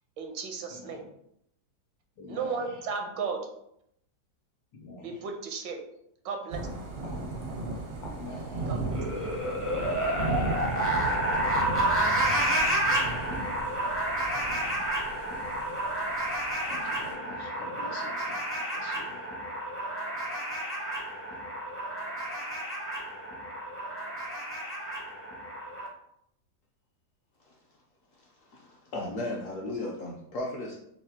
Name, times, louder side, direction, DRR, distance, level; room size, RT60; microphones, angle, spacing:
voice 1, 0.2-1.0 2.3-3.5 5.0-5.8 6.2-6.6 8.7-8.8 9.2-9.3 9.6-9.8 10.8-10.9, right 5 dB, 80° right, 3 dB, 1.4 m, -35 dB
voice 2, 0.7-1.0 2.2-2.9 4.7-5.3 7.0-7.2 8.0-9.5 10.5-10.6 13.0-13.5 14.6-14.8 16.6-19.3, left 3 dB, 85° left, 0 dB, 1.6 m, -47 dB
Thunder / Rain, 6.5-17.1, right 3 dB, 55° right, 0.6 m, -36 dB
sound 1, 8.9-25.9, right 1 dB, 15° left, 0.4 m, -30 dB
voice 3, 28.2-30.8, left 1 dB, 65° left, -2 dB, 0.8 m, -36 dB
5.9 x 2.3 x 2.8 m, 0.75 s
omnidirectional pair, 2.0 m